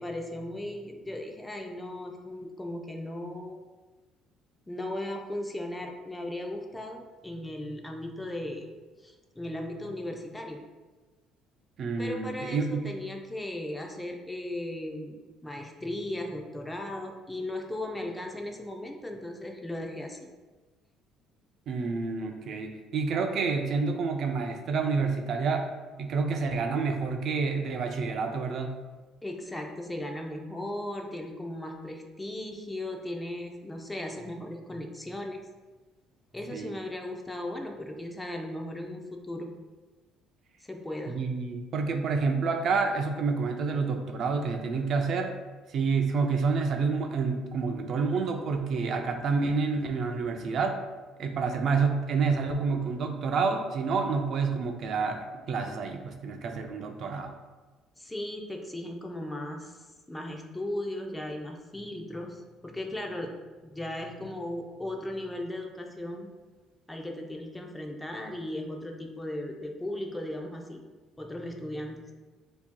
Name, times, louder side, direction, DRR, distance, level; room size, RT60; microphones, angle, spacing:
voice 1, 0.0-3.6 4.7-8.7 9.0-10.6 12.0-20.3 29.2-35.4 36.3-39.5 40.6-41.2 58.0-59.8 60.1-63.3 63.6-66.3 66.9-70.8 71.2-72.0, left 1 dB, 10° left, 2 dB, 0.5 m, -37 dB
voice 2, 11.8-12.9 21.7-25.7 26.0-28.7 36.5-36.7 41.1-45.3 45.7-50.8 51.2-57.3, right 4 dB, 55° right, 5 dB, 0.4 m, -28 dB
7.0 x 2.8 x 2.2 m, 1.3 s
cardioid pair, 125°, 0 cm